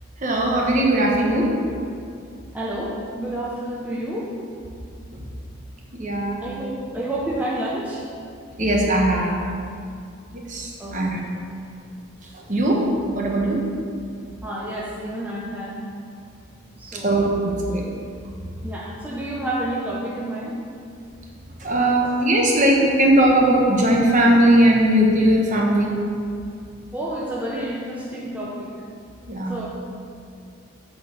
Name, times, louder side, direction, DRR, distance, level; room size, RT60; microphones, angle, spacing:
voice 1, 0.2-1.5 5.9-6.4 8.6-9.4 10.3-11.2 12.5-12.8 13.1-13.6 16.9-17.9 21.6-25.9 29.3-29.6, right 1 dB, 35° right, -1 dB, 1.1 m, -19 dB
voice 2, 2.5-4.3 6.4-8.0 10.8-11.3 14.4-15.7 16.7-17.2 18.6-20.6 26.9-28.7 29.5-29.7, right 1 dB, 5° right, -5 dB, 0.8 m, -29 dB
8.4 x 4.4 x 6.9 m, 2.3 s
head